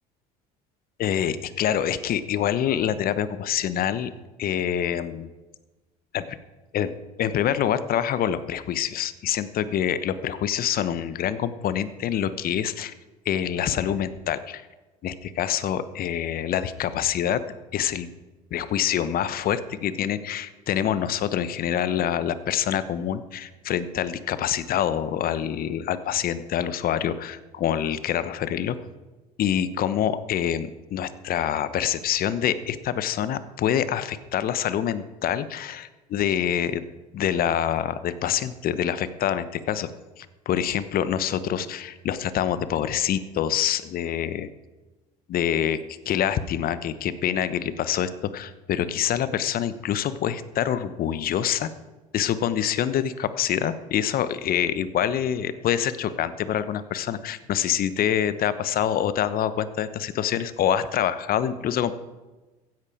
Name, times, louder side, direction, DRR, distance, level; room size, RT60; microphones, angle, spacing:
voice 1, 1.0-4.1 4.4-5.3 6.1-6.2 6.7-6.9 7.2-12.9 13.2-14.7 15.0-17.4 17.7-18.1 18.5-28.8 29.4-36.8 37.1-39.9 40.2-44.5 45.3-45.8 46.0-51.7 52.1-62.0, left 10 dB, 50° left, 14 dB, 1.1 m, -26 dB
15.5 x 10.5 x 5.0 m, 1.2 s
hypercardioid pair, 65°, 20 cm